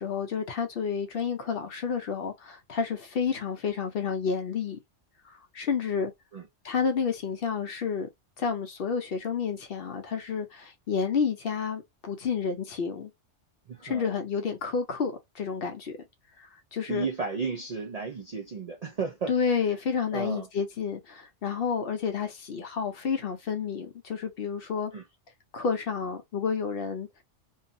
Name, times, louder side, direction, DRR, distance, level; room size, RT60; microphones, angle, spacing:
voice 1, 0.0-4.8 5.2-6.1 6.6-8.1 8.4-13.1 13.8-16.0 16.4-17.1 19.3-24.9 25.5-27.1, left 6 dB, 60° left, 0.7 m, -30 dB
voice 2, 13.7-14.1 16.9-19.3 20.1-20.5 24.9-25.0, right 5 dB, 55° right, 0.4 m, -33 dB
2.7 x 2.3 x 2.5 m
omnidirectional pair, 1.3 m